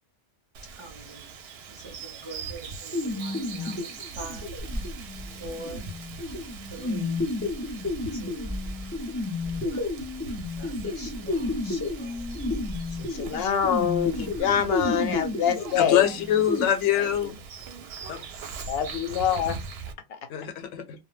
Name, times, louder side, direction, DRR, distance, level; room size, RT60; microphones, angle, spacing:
Bird vocalization bird call bird song, 0.5-19.9, right 5 dB, 65° right, 0.7 m, -41 dB
voice 1, 0.7-1.4 1.7-4.5 5.4-5.9 6.7-7.2 8.1-8.6 9.4-10.0 10.5-12.3 12.9-13.3, right 2 dB, 35° right, 0.5 m, -44 dB
sound 1, 2.9-16.6, left 2 dB, 20° left, 0.3 m, -32 dB
sound 2, 4.6-14.4, equal, 15° right, 0.8 m, -41 dB
voice 2, 13.1-16.1 17.0-17.1 18.7-19.6 20.1-20.2, left 8 dB, 65° left, 0.7 m, -25 dB
voice 3, 15.8-17.4 18.1-18.2 20.3-20.8, left 10 dB, 90° left, 0.9 m, -24 dB
2.1 x 2.1 x 3.1 m
omnidirectional pair, 1.2 m